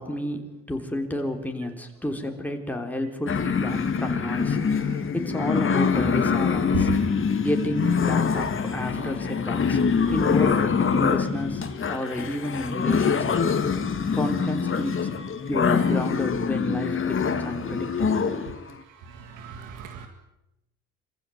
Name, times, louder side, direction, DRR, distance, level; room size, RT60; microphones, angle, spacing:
voice 1, 0.0-7.0 7.4-9.8 10.1-13.6 14.1-15.1 15.5-18.2, left 1 dB, 5° left, 3 dB, 3.5 m, -31 dB
sound 1, 3.3-18.6, left 6 dB, 45° left, 2.3 m, -24 dB
voice 2, 19.0-20.1, right 6 dB, 90° right, 7 dB, 2.0 m, -41 dB
24.5 x 15.5 x 9.3 m, 0.91 s
cardioid pair, 90°, 30 cm